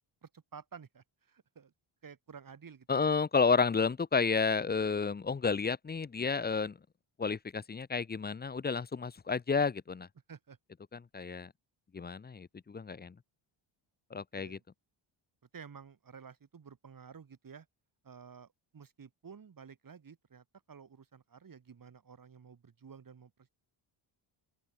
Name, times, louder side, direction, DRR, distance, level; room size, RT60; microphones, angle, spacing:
voice 1, 0.0-1.7 2.0-3.1 10.3-10.6 14.3-14.6 15.5-17.7 18.0-23.5, right 6 dB, 40° right, 5.0 m, -52 dB
voice 2, 2.9-6.7 7.2-10.1 11.1-11.5 11.9-13.1 14.1-14.6, left 5 dB, 20° left, 0.6 m, -31 dB
open air
cardioid pair, 120°, 50 cm